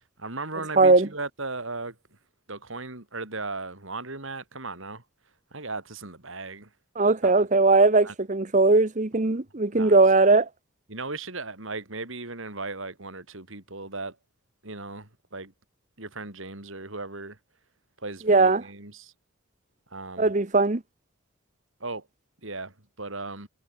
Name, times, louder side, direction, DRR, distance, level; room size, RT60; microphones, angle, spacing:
voice 1, 0.2-2.0 2.5-5.0 5.5-6.7 7.2-7.5 8.0-8.1 9.7-10.3 10.9-14.2 14.6-15.5 16.0-17.4 18.0-19.1 19.9-20.3 21.8-22.1 22.4-23.5, right 3 dB, 65° right, 4.0 m, -37 dB
voice 2, 0.8-1.1 7.0-10.5 18.3-18.6 20.2-20.8, right 3 dB, 35° right, 0.9 m, -19 dB
head